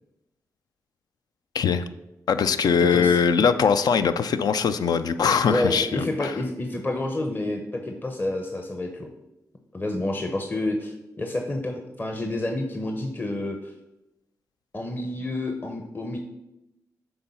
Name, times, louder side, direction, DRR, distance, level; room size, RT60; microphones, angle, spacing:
voice 1, 2.3-6.3, left 6 dB, 75° left, 11 dB, 0.4 m, -21 dB
voice 2, 2.9-3.2 5.5-9.1 9.7-13.7 14.7-16.2, left 2 dB, 30° left, 4 dB, 0.8 m, -29 dB
6.9 x 3.9 x 5.5 m, 0.93 s
cardioid pair, 60°, 7 cm